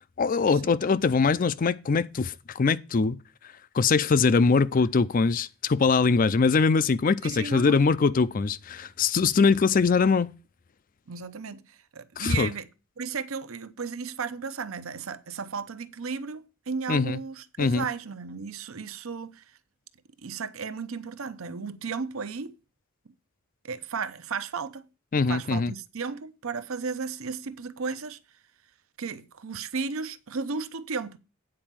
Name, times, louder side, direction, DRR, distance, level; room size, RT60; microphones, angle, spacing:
voice 1, 0.2-3.2 3.7-10.3 12.2-12.5 16.9-17.2 17.6-17.9 25.1-25.7, left 4 dB, 40° left, 0.4 m, -22 dB
voice 2, 7.2-7.8 11.1-11.7 11.9-12.7 13.0-19.4 20.2-22.5 23.6-24.9 25.3-28.2 29.0-31.2, right 5 dB, 75° right, 0.7 m, -34 dB
8.8 x 4.5 x 7.4 m
head